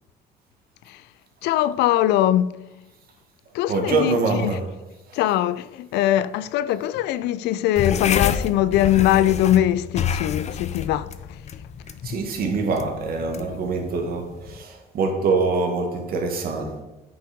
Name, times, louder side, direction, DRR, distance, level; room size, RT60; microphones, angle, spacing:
voice 1, 1.4-2.6 3.5-4.2 4.4-4.5 5.1-11.1, left 12 dB, 85° left, 0.5 m, -21 dB
voice 2, 3.7-4.7 5.1-5.2 12.0-16.8, right 4 dB, 60° right, 1.9 m, -24 dB
sound 1, 7.8-14.6, left 7 dB, 40° left, 0.7 m, -29 dB
9.2 x 5.6 x 5.2 m
cardioid pair, 110°, 17 cm